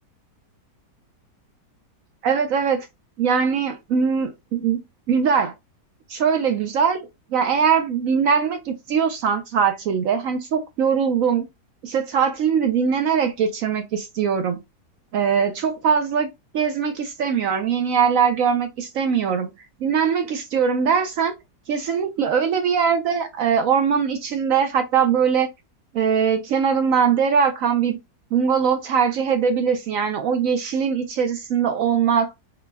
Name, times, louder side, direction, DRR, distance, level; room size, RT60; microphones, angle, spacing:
voice 1, 2.2-2.9 3.2-4.8 5.1-5.5 6.1-11.5 11.8-14.6 15.1-16.3 16.5-19.5 19.8-21.3 21.7-25.5 25.9-28.0 28.3-32.3, right 7 dB, 70° right, 0.8 m, -21 dB
4.0 x 2.2 x 3.3 m
omnidirectional pair, 1.8 m